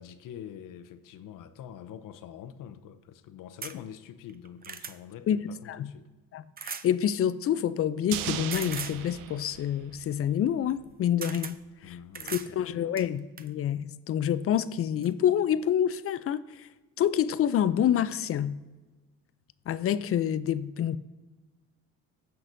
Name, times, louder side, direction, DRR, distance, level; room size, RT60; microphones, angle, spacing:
voice 1, 0.0-6.1 11.8-12.8, left 9 dB, 65° left, 0.8 m, -45 dB
sound 1, 3.6-3.8 4.3-5.0 6.6-6.9 8.5-9.0 10.7-10.8 11.2-11.6 12.1-12.5 13.0-13.5 14.5-14.6 15.0-15.1, right 6 dB, 25° right, 0.5 m, -38 dB
voice 2, 5.3-5.9 6.3-12.0 12.3-16.7 17.0-18.6 19.7-21.0, left 9 dB, 40° left, 0.4 m, -27 dB
sound 2, 8.1-10.5 10.8-10.9, right 12 dB, 70° right, 0.6 m, -37 dB
16.0 x 5.9 x 2.6 m
cardioid pair, 95°, 35 cm